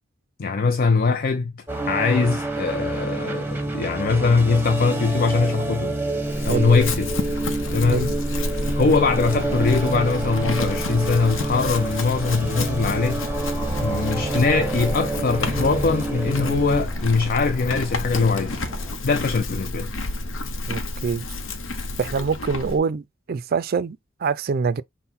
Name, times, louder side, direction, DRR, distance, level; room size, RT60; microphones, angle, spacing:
voice 1, 0.4-6.0 6.4-7.1 7.7-8.2 8.7-13.2 13.8-18.6 19.0-19.9, left 4 dB, 50° left, 0.5 m, -22 dB
sound 1, 1.7-16.8, right 2 dB, 10° right, 0.9 m, -28 dB
Chewing mastication / Livestock farm animals working animals, 6.2-22.8, left 2 dB, 75° left, 0.8 m, -30 dB
sound 2, 13.6-19.0, equal, 10° left, 1.9 m, -41 dB
voice 2, 20.7-21.2 22.0-24.8, right 5 dB, 50° right, 0.4 m, -25 dB
5.7 x 2.1 x 4.1 m
head